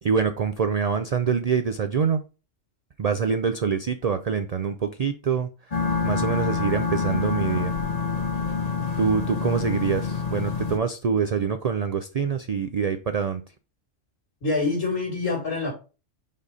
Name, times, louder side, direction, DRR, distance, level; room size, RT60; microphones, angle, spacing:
voice 1, 0.0-2.2 3.0-5.5 6.0-7.7 9.0-13.4, right 6 dB, 85° right, 9 dB, 0.3 m, -25 dB
sound 1, 5.7-10.8, left 5 dB, 35° left, 0.8 m, -27 dB
voice 2, 14.4-15.7, left 3 dB, 75° left, -6 dB, 2.7 m, -25 dB
5.5 x 4.1 x 4.8 m, 0.32 s
omnidirectional pair, 1.3 m